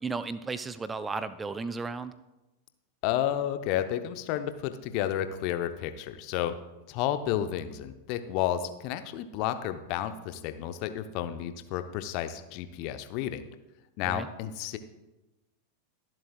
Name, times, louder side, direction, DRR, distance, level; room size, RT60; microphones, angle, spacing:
voice 1, 0.0-2.1 14.1-14.3, right 4 dB, 15° right, 14 dB, 0.4 m, -34 dB
voice 2, 3.0-6.5 6.9-13.5 14.0-14.8, left 11 dB, 45° left, 10 dB, 0.7 m, -31 dB
22.5 x 7.6 x 2.3 m, 1.0 s
figure-of-eight pair, 90°, 0 cm